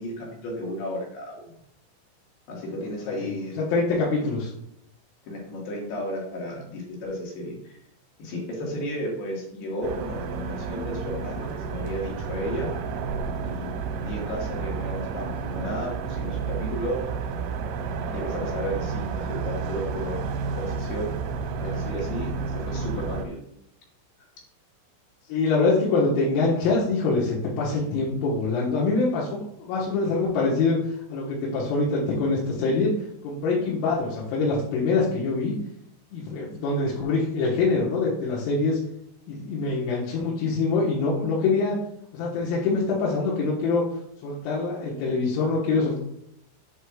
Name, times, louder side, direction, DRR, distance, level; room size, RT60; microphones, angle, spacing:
voice 1, 0.0-1.5 2.5-3.5 5.2-7.8 8.2-12.7 13.4-17.0 18.1-20.2 20.5-21.2 21.6-23.4, equal, 60° left, -2 dB, 3.3 m, -33 dB
voice 2, 3.6-4.5 25.3-32.9 33.2-35.6 36.1-38.8 39.3-41.8 42.1-43.8 44.2-46.0, left 3 dB, 85° left, -6 dB, 4.2 m, -24 dB
sound 1, 9.8-23.3, right 5 dB, 85° right, 3.0 m, -31 dB
8.8 x 8.0 x 2.4 m, 0.77 s
omnidirectional pair, 5.9 m